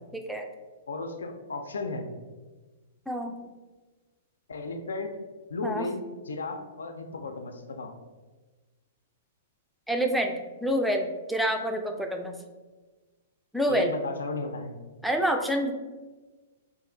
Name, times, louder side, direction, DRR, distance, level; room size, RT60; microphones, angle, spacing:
voice 1, 0.9-2.1 4.5-5.2 5.5-7.9 13.6-14.8, left 3 dB, 90° left, 5 dB, 0.3 m, -34 dB
voice 2, 9.9-10.3 10.6-12.3 13.5-13.9 15.0-15.7, equal, ahead, 3 dB, 0.3 m, -27 dB
2.6 x 2.4 x 3.7 m, 1.2 s
hypercardioid pair, 130°, 0 cm